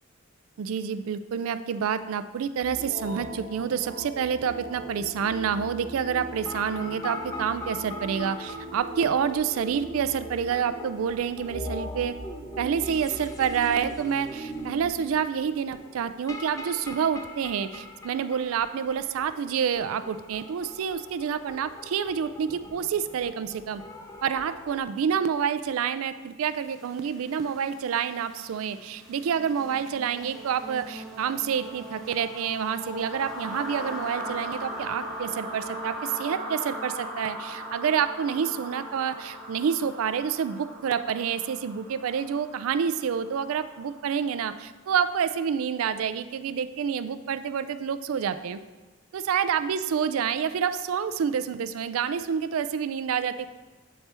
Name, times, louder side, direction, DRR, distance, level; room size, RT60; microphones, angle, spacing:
voice 1, 0.6-12.2 12.6-23.8 24.2-48.6 49.1-53.5, right 7 dB, 75° right, 13 dB, 0.3 m, -28 dB
sound 1, 2.6-14.9, equal, 30° left, 1.7 m, -39 dB
sound 2, 6.3-24.8, left 2 dB, 15° left, 0.4 m, -44 dB
sound 3, 26.6-44.4, equal, ahead, 0.8 m, -39 dB
8.3 x 4.3 x 3.4 m, 1.2 s
head